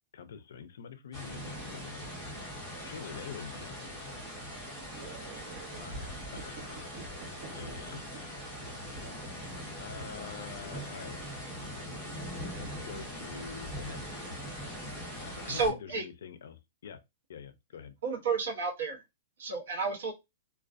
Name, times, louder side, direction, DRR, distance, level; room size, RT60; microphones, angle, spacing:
voice 1, 0.1-2.0 2.8-4.3 5.7-6.1 6.3-6.9 7.5-9.1 9.8-11.2 12.6-14.2 15.2-17.0 17.3-17.9, left 7 dB, 65° left, 0.4 m, -46 dB
sound 1, 1.1-15.7, equal, 5° left, 0.8 m, -41 dB
voice 2, 4.7-5.8 6.4-7.1 7.4-8.0, right 7 dB, 30° right, 0.3 m, -49 dB
voice 3, 15.5-16.0 18.0-19.0 19.4-20.1, right 4 dB, 65° right, 0.8 m, -31 dB
2.4 x 2.2 x 2.4 m
hypercardioid pair, 180°, 0 cm